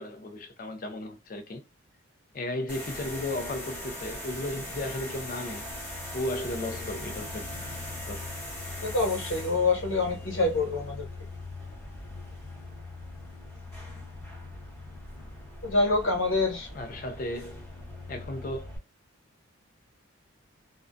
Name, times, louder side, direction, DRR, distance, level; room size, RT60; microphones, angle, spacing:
voice 1, 0.0-1.6 2.3-5.7 6.1-7.4 8.1-8.3 16.7-17.7 18.1-18.7, left 1 dB, 40° left, 0.4 m, -35 dB
sound 1, 2.7-18.8, left 2 dB, 10° left, 0.8 m, -40 dB
voice 2, 8.8-11.0 15.6-16.7, left 3 dB, 70° left, 1.2 m, -26 dB
2.5 x 2.1 x 2.4 m
head